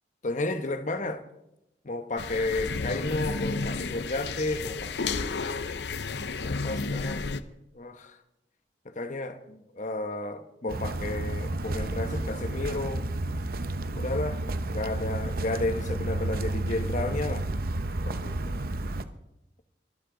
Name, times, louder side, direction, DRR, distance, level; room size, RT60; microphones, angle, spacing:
voice 1, 0.2-1.2 1.8-5.8 6.4-7.3 7.7-8.2 8.8-13.1 13.9-17.5 18.1-18.5, left 2 dB, 45° left, 1.1 m, -32 dB
sound 1, 2.2-7.4, left 4 dB, 70° left, 0.7 m, -32 dB
sound 2, 10.7-19.0, right 2 dB, 55° right, 0.8 m, -31 dB
23.0 x 12.0 x 3.9 m
head